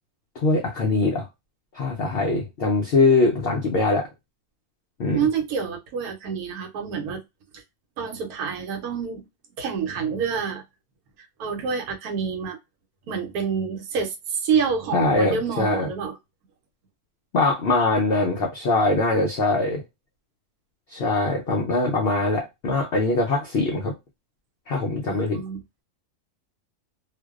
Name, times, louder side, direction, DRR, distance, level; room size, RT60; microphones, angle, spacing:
voice 1, 0.4-1.3 1.7-4.1 5.0-5.2 14.9-15.9 17.3-19.8 20.9-23.9 24.7-25.4, left 3 dB, 75° left, 0.5 m, -22 dB
voice 2, 5.1-7.2 7.5-7.6 8.0-9.2 9.6-10.6 11.4-12.6 13.1-16.2 25.0-25.6, right 6 dB, 75° right, 1.1 m, -27 dB
2.5 x 2.2 x 2.3 m
omnidirectional pair, 1.6 m